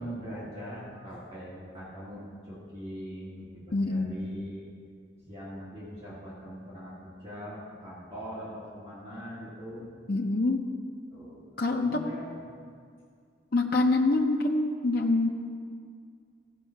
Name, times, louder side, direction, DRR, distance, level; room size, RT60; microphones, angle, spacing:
voice 1, 0.0-4.7 5.2-9.9 11.1-12.4, equal, 30° right, -9 dB, 1.9 m, -41 dB
voice 2, 3.7-4.1 10.1-10.7 11.6-12.0 13.5-15.3, left 2 dB, 50° left, 2 dB, 0.5 m, -25 dB
15.0 x 5.4 x 5.7 m, 2.2 s
head